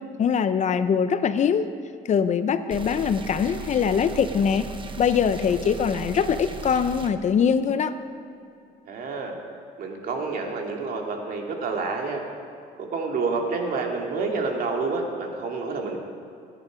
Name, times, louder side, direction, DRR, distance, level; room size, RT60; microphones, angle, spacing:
voice 1, 0.2-1.7 2.1-4.7 5.0-8.0, left 7 dB, 45° left, 11 dB, 0.7 m, -22 dB
sound 1, 2.7-7.1, right 4 dB, 30° right, 1.0 m, -37 dB
voice 2, 8.9-9.3 9.8-12.2 12.8-16.0, right 4 dB, 60° right, 1 dB, 2.4 m, -28 dB
19.0 x 10.0 x 5.2 m, 2.5 s
cardioid pair, 110°, 17 cm